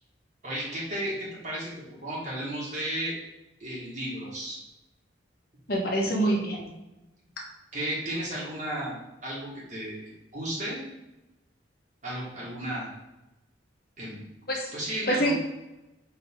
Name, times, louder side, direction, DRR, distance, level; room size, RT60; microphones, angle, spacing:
voice 1, 0.4-3.1 3.6-4.6 6.2-6.3 7.7-9.0 9.2-10.8 12.0-12.9 14.0-14.2 14.7-15.3, right 1 dB, 40° right, -6 dB, 1.6 m, -34 dB
voice 2, 5.7-6.6 14.5-14.7 15.1-15.3, right 1 dB, 50° left, -1 dB, 1.2 m, -25 dB
5.5 x 4.7 x 3.6 m, 0.98 s
head